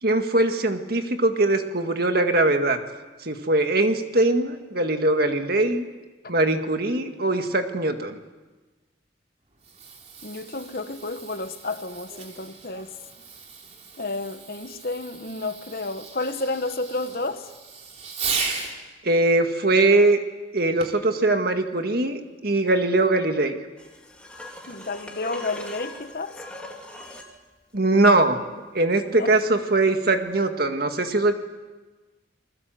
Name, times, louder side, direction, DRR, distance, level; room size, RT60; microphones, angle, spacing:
voice 1, 0.0-2.8 3.2-5.9 6.3-8.2 19.0-20.2 20.5-23.5 27.7-28.4 28.7-31.3, right 2 dB, 55° right, 2.0 m, -21 dB
Fireworks, 9.4-18.8 20.8-21.1 21.8-21.9, right 4 dB, 35° right, 3.5 m, -36 dB
voice 2, 10.2-12.9 14.0-17.5 24.7-26.4 29.1-29.4, left 2 dB, 50° left, 1.4 m, -31 dB
sound 1, 23.8-27.4 30.3-30.4, left 1 dB, 5° left, 2.7 m, -40 dB
29.0 x 21.0 x 7.8 m
head